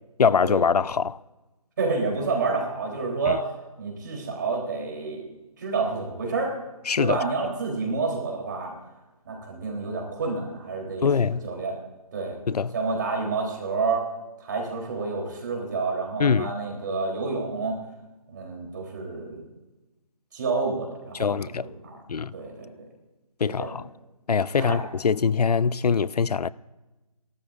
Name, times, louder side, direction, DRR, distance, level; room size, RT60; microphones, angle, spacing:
voice 1, 0.2-1.2 3.3-3.4 6.9-7.2 11.0-11.5 12.5-12.7 16.2-16.5 21.1-21.7 22.1-22.3 23.4-23.9 24.3-26.5, left 6 dB, 90° left, 0.5 m, -23 dB
voice 2, 1.8-3.5 3.8-5.2 5.6-6.5 7.0-8.7 9.2-11.8 12.1-12.4 12.7-14.1 14.4-17.8 18.3-19.4 20.3-22.0 22.3-22.9 23.5-23.7 24.6-24.8, right 4 dB, 30° right, 3.5 m, -29 dB
29.0 x 12.5 x 2.5 m
figure-of-eight pair, 165°, 19 cm